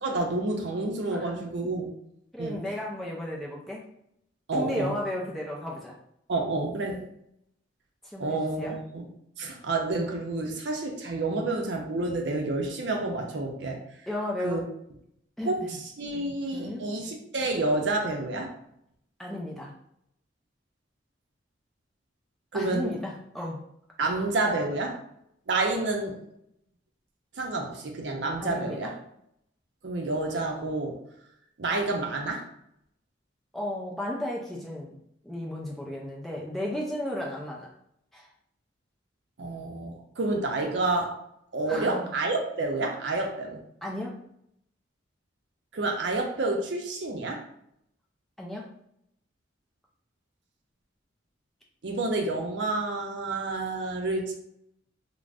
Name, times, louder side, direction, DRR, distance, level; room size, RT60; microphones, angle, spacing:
voice 1, 0.0-1.9 2.4-2.6 4.5-4.9 6.3-7.1 8.2-9.1 9.4-13.8 14.4-14.6 15.4-15.7 16.0-18.5 22.5-23.0 24.0-25.0 25.5-26.2 27.4-28.9 29.8-30.9 31.6-32.4 39.4-41.2 41.5-43.6 45.7-47.4 51.8-54.3, right 2 dB, 60° right, 1 dB, 0.5 m, -29 dB
voice 2, 2.3-3.8 4.5-6.0 8.0-8.8 11.3-11.5 14.1-14.7 15.4-15.8 16.5-16.8 19.2-19.7 22.5-23.6 28.4-28.9 33.5-35.0 35.2-37.7 38.1-38.3 41.7-42.1 43.8-44.2 48.4-48.7, left 1 dB, ahead, -3 dB, 0.4 m, -34 dB
2.4 x 2.0 x 3.3 m, 0.74 s
head